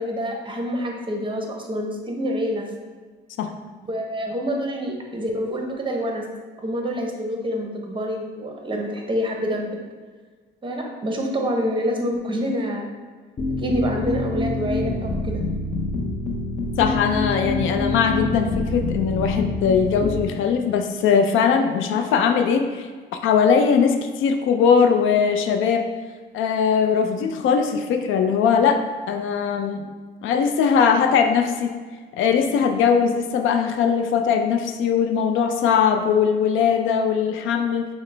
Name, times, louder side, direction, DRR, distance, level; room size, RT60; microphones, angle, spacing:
voice 1, 0.0-2.7 3.9-6.3 6.6-9.8 10.6-12.9 13.6-15.4, equal, 25° right, 1 dB, 0.7 m, -27 dB
sound 1, 13.4-20.2, left 2 dB, 35° left, 0.7 m, -26 dB
voice 2, 16.8-22.9 23.2-25.9 26.3-28.8 29.1-29.9 30.2-31.7 32.1-37.9, left 6 dB, 80° left, 5 dB, 0.4 m, -20 dB
5.7 x 2.1 x 3.2 m, 1.5 s
cardioid pair, 90°, 20 cm